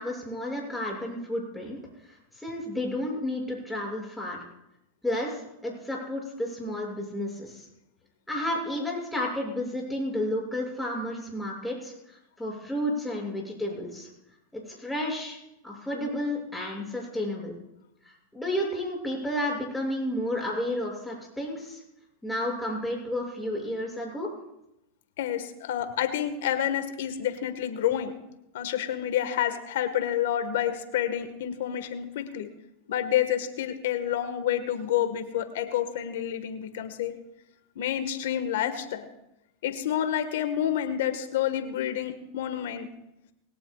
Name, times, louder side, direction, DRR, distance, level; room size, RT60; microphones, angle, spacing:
voice 1, 0.0-1.8 2.1-4.4 5.0-7.7 8.3-14.1 14.5-15.4 15.6-17.5 18.0-21.8 22.2-24.3, left 1 dB, 5° left, -2 dB, 7.2 m, -32 dB
voice 2, 25.2-28.1 28.5-32.5 32.9-37.1 37.7-39.1 39.6-42.9, left 10 dB, 75° left, 9 dB, 1.7 m, -29 dB
21.0 x 17.5 x 2.5 m, 0.86 s
hypercardioid pair, 105°, 0 cm